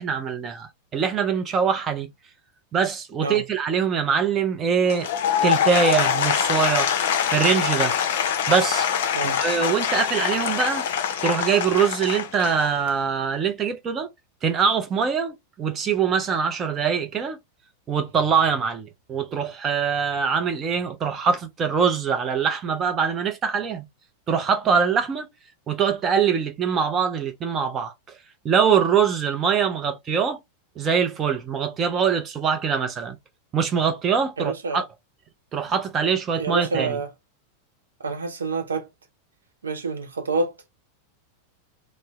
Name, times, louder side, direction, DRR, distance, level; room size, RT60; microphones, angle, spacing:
voice 1, 0.0-2.1 2.7-5.1 5.4-6.9 7.3-8.0 8.5-8.9 9.2-10.9 11.2-14.1 14.4-17.4 17.9-23.9 24.3-25.3 25.7-27.9 28.4-30.4 30.8-33.2 33.5-34.8 35.5-37.0, right 6 dB, 25° right, 0.5 m, -23 dB
Applause / Crowd, 4.8-13.0, left 8 dB, 55° left, 0.4 m, -24 dB
voice 2, 34.4-34.8 36.3-37.1 38.0-38.9 39.6-40.7, right 3 dB, 70° right, 0.6 m, -27 dB
2.6 x 2.0 x 2.9 m
figure-of-eight pair, 90°, 0 cm